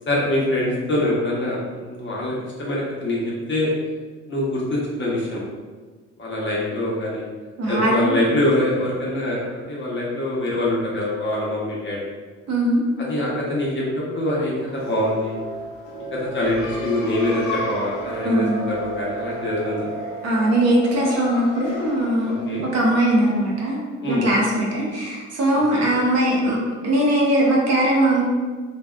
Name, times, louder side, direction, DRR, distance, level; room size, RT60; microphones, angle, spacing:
voice 1, 0.1-2.3 2.6-3.2 3.5-3.7 4.3-5.4 6.2-7.2 7.7-12.0 13.0-13.8 14.1-15.4 16.1-19.9 22.2-22.7 24.0-24.2 25.5-25.9, left 1 dB, 40° left, -5 dB, 0.8 m, -24 dB
voice 2, 7.6-8.2 12.5-12.8 18.2-18.6 20.2-22.4 22.7-23.8 24.1-26.6 26.8-28.2, right 1 dB, 55° right, -3 dB, 0.7 m, -20 dB
sound 1, 14.6-24.0, right 2 dB, 70° left, 0.6 m, -33 dB
2.7 x 2.3 x 2.2 m, 1.4 s
cardioid pair, 90°, 30 cm